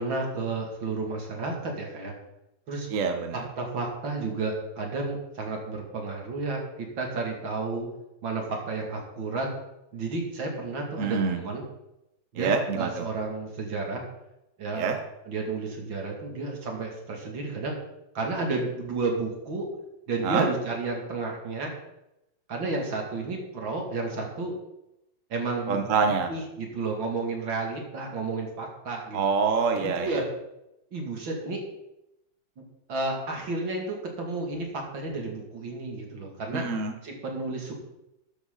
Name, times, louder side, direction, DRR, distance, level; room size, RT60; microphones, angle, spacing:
voice 1, 0.0-2.1 2.7-2.9 3.3-7.9 8.2-9.5 9.9-11.6 12.3-14.0 14.6-14.9 15.2-17.7 18.1-19.7 20.1-21.7 22.5-24.5 25.3-29.2 29.8-30.3 30.9-31.6 32.9-36.6 37.0-37.7, right 3 dB, 75° right, 1 dB, 3.2 m, -32 dB
voice 2, 2.9-3.5 11.0-11.4 12.3-13.0 14.7-15.0 20.2-20.4 25.7-26.3 29.1-30.2 36.5-36.9, right 5 dB, 45° right, 5 dB, 1.3 m, -26 dB
13.5 x 10.0 x 4.0 m, 0.87 s
omnidirectional pair, 2.1 m